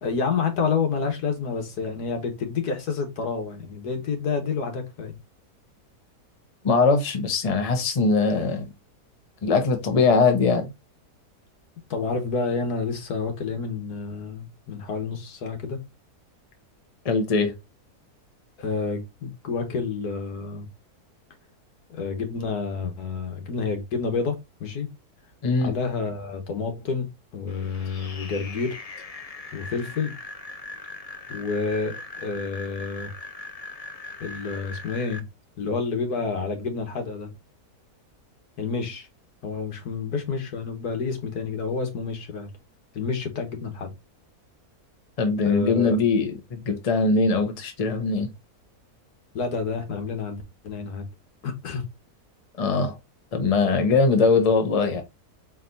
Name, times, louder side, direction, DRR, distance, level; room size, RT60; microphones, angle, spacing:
voice 1, 0.0-5.2 11.9-15.8 18.6-20.7 21.9-24.9 25.6-28.8 29.5-30.1 31.3-31.9 32.2-33.1 34.2-35.2 35.6-37.3 38.6-39.1 39.4-42.5 42.9-43.9 45.4-46.0 49.3-51.1 51.4-51.9, left 4 dB, 80° left, 1.8 m, -29 dB
voice 2, 6.6-8.7 9.4-10.7 17.0-17.5 25.4-25.8 45.2-48.3 52.6-53.0 53.3-55.0, left 4 dB, 30° left, 0.9 m, -21 dB
sound 1, 27.5-35.2, left 3 dB, 45° left, 0.5 m, -40 dB
4.5 x 3.6 x 2.6 m
omnidirectional pair, 1.7 m